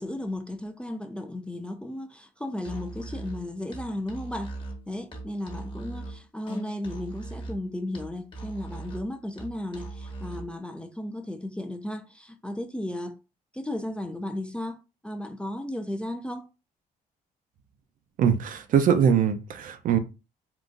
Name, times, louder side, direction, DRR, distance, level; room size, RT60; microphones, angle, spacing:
voice 1, 0.0-4.6 4.9-13.2 13.5-14.8 15.0-16.5, left 1 dB, 5° left, 0.3 m, -34 dB
Musical instrument, 2.6-10.5, right 2 dB, 35° left, 1.1 m, -40 dB
voice 2, 18.2-20.0, right 7 dB, 60° right, 0.5 m, -22 dB
3.8 x 2.3 x 2.5 m
cardioid pair, 90°, 15 cm